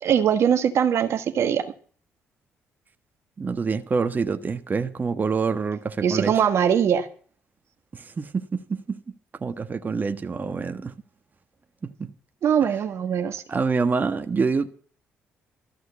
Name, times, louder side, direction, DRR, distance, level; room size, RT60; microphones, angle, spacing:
voice 1, 0.0-1.7 6.0-7.1 12.4-13.4, right 8 dB, 65° right, 1.4 m, -21 dB
voice 2, 3.4-6.4 7.9-9.0 9.4-10.9 11.8-12.1 12.6-12.8 13.5-14.7, right 4 dB, 35° right, 1.3 m, -26 dB
13.5 x 6.4 x 9.6 m
supercardioid pair, 60°, 5 cm